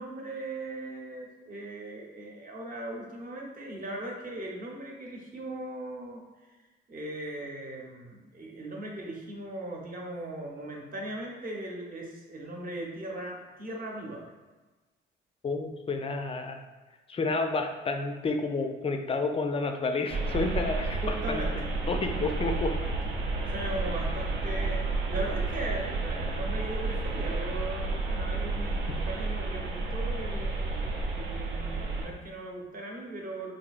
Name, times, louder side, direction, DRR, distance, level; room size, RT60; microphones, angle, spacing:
voice 1, 0.0-6.5 6.9-14.3 21.0-21.7 23.4-33.5, right 1 dB, 45° right, -1 dB, 0.9 m, -39 dB
voice 2, 15.4-16.6 17.1-21.4 21.9-22.8, left 3 dB, 30° left, 5 dB, 0.4 m, -30 dB
sound 1, 20.1-32.1, right 3 dB, 80° right, 0.6 m, -31 dB
3.9 x 2.6 x 2.4 m, 1.3 s
cardioid pair, 90°, 20 cm